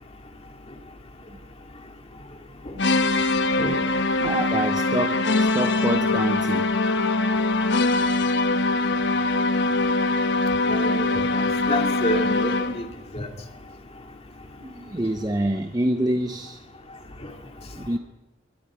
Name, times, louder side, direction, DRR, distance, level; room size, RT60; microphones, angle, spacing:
sound 1, 2.8-12.9, left 2 dB, 60° left, 1.1 m, -22 dB
voice 1, 4.2-6.7 14.6-16.6 17.8-18.0, right 1 dB, 20° right, 7 dB, 0.8 m, -27 dB
voice 2, 10.7-11.2 11.7-12.9 13.1-13.3, left 1 dB, 30° left, 4 dB, 2.3 m, -28 dB
24.0 x 22.0 x 5.0 m, 1.0 s
head